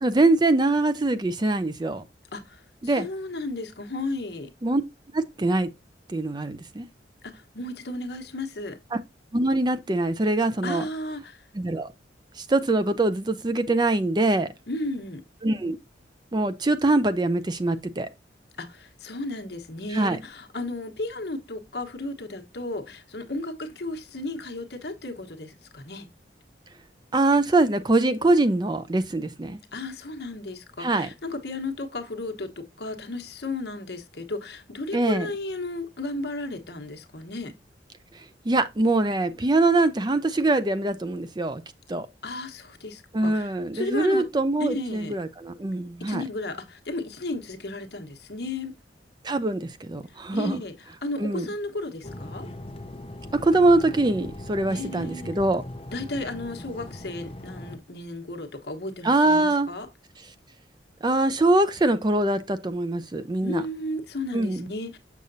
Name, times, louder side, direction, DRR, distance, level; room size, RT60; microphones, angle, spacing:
voice 1, 0.0-2.0 2.8-3.1 4.6-4.8 5.1-5.7 6.1-6.9 8.9-9.0 9.3-10.8 11.6-11.9 12.4-14.5 15.4-15.8 16.3-18.1 19.9-20.2 27.1-29.6 30.8-31.1 34.9-35.3 38.5-41.6 41.9-42.1 43.1-46.2 49.2-50.6 51.2-51.5 53.3-55.6 59.0-59.7 61.0-63.6 64.3-64.6, right 2 dB, 25° right, 0.5 m, -23 dB
voice 2, 2.3-4.5 7.2-8.8 10.6-11.5 14.7-15.2 18.6-26.1 29.7-37.5 42.2-44.3 44.6-45.1 46.0-48.8 50.1-52.5 54.7-55.3 55.9-59.9 63.4-65.0, left 2 dB, 65° left, 1.1 m, -34 dB
sound 1, 52.0-57.8, left 1 dB, 30° left, 0.7 m, -40 dB
6.7 x 6.5 x 2.6 m
head